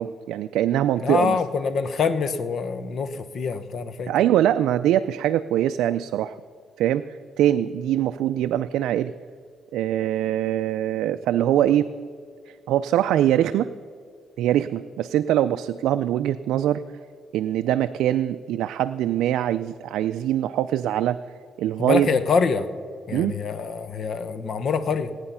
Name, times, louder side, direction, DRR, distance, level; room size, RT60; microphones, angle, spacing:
voice 1, 0.0-1.4 4.1-6.4 6.8-7.0 7.4-9.1 9.7-11.9 12.7-13.7 14.4-16.8 17.3-21.2 21.6-22.1 23.1-23.3, right 12 dB, 90° right, 10 dB, 0.3 m, -23 dB
voice 2, 1.0-4.1 21.8-22.7 23.1-25.1, left 5 dB, 55° left, 11 dB, 0.9 m, -25 dB
17.5 x 9.5 x 5.6 m, 2.1 s
cardioid pair, 100°, 0 cm